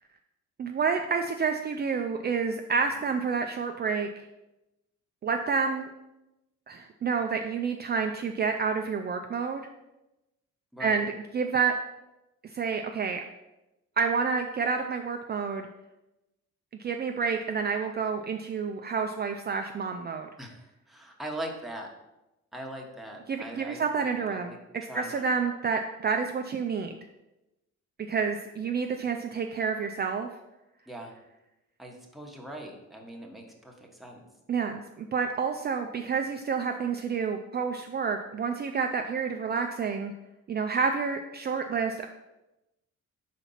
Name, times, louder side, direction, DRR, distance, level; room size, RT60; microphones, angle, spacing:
voice 1, 0.6-4.1 5.2-5.9 6.7-9.6 10.8-11.1 11.3-11.7 12.4-13.2 14.0-15.7 16.8-20.3 23.3-27.0 28.1-30.3 34.5-40.1 40.5-42.1, right 5 dB, 35° right, 5 dB, 0.4 m, -29 dB
voice 2, 10.7-11.0 20.4-21.9 22.5-24.6 24.9-25.3 30.9-31.1 31.8-34.2, right 1 dB, ahead, -1 dB, 1.2 m, -41 dB
4.4 x 4.1 x 5.6 m, 0.97 s
cardioid pair, 90°, 30 cm